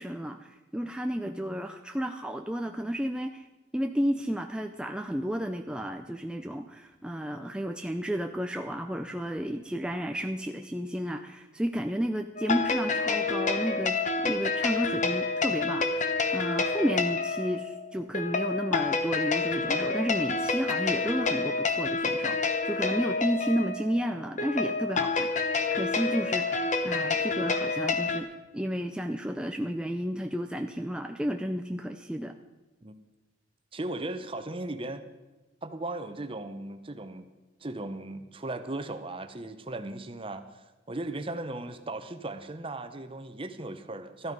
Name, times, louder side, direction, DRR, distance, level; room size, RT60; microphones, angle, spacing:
voice 1, 0.0-3.5 3.7-28.3 28.5-32.3, equal, 5° right, 5 dB, 0.4 m, -32 dB
sound 1, 12.4-28.2, left 4 dB, 40° left, 1.0 m, -28 dB
voice 2, 33.7-35.0 35.6-37.2 37.6-44.3, right 2 dB, 30° right, 9 dB, 0.9 m, -37 dB
14.0 x 12.5 x 5.3 m, 1.1 s
head